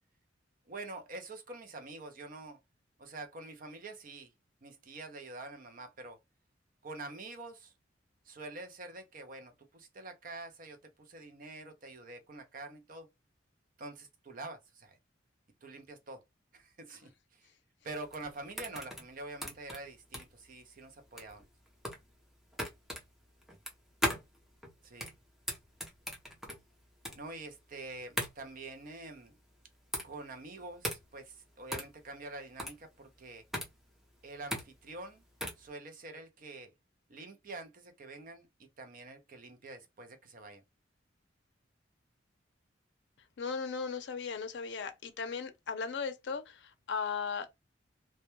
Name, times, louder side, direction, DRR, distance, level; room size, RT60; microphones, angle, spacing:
voice 1, 0.7-2.6 3.0-4.3 4.6-6.2 6.8-7.7 8.3-13.1 13.8-15.0 15.6-16.2 16.5-17.5 17.8-21.5 24.8-25.1 27.1-29.3 30.0-33.4 34.2-35.2 35.6-36.7 37.1-38.5 38.8-40.6, right 2 dB, 45° right, 0.5 m, -46 dB
sound 1, 17.9-35.7, equal, ahead, 0.5 m, -40 dB
voice 2, 43.4-47.5, left 5 dB, 65° left, 0.5 m, -37 dB
2.2 x 2.2 x 2.9 m
head